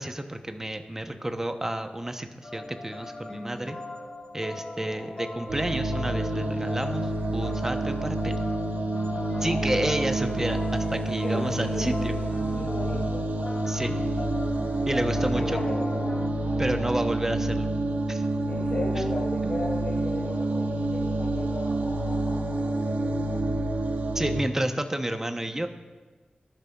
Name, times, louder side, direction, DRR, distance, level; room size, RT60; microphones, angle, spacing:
voice 1, 0.0-3.8 4.3-8.4 9.4-12.1 13.7-13.9 14.9-15.6 16.6-17.7 18.1-18.3 19.0-19.1 19.4-19.6 24.1-25.7, right 1 dB, 15° right, 7 dB, 0.7 m, -30 dB
sound 1, 2.4-16.3, left 2 dB, 45° left, 1.6 m, -38 dB
sound 2, 5.5-24.4, right 2 dB, 75° right, 0.8 m, -28 dB
voice 2, 9.3-9.9 11.2-12.2 12.5-13.6 15.2-17.1 18.5-23.5, left 2 dB, 65° left, -7 dB, 2.7 m, -37 dB
19.0 x 10.5 x 2.3 m, 1.4 s
wide cardioid pair, 105°, 3 cm